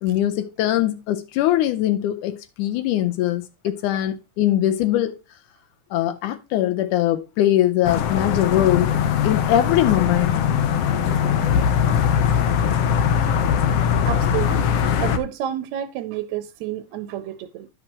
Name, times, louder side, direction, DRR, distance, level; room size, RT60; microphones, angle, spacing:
voice 1, 0.0-5.2 5.9-8.9 9.2-10.4, left 13 dB, 85° left, 2.2 m, -21 dB
sound 1, 7.8-15.2, left 8 dB, 65° left, 1.7 m, -21 dB
sound 2, 8.3-12.6, left 1 dB, 45° left, 2.1 m, -37 dB
voice 2, 13.8-14.7 15.0-17.7, right 12 dB, 75° right, 1.8 m, -30 dB
10.5 x 7.2 x 2.9 m
omnidirectional pair, 3.5 m